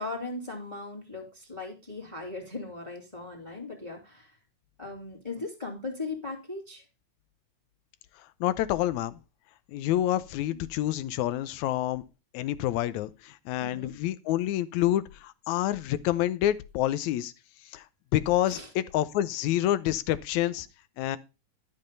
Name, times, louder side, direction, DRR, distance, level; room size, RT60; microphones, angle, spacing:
voice 1, 0.0-4.4 4.8-6.8 10.5-10.6 13.6-14.0 18.5-18.7, left 3 dB, 10° left, 2.4 m, -38 dB
voice 2, 8.4-9.1 9.7-12.0 12.3-17.3 17.7-17.9 18.1-20.7 21.0-21.2, left 13 dB, 80° left, 2.0 m, -28 dB
12.0 x 5.5 x 5.3 m
omnidirectional pair, 3.3 m